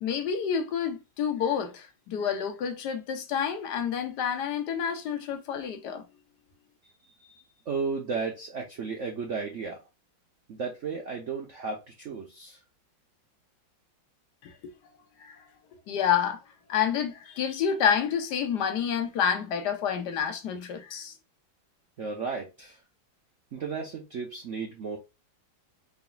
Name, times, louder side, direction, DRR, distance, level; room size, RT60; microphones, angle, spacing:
voice 1, 0.0-6.0 14.4-14.7 15.2-15.4 15.9-16.4 16.7-21.1, left 8 dB, 65° left, 1.3 m, -29 dB
voice 2, 7.0-9.8 10.5-12.6 22.0-22.8 23.5-25.0, right 5 dB, 70° right, 0.7 m, -34 dB
4.0 x 3.9 x 2.3 m
omnidirectional pair, 2.2 m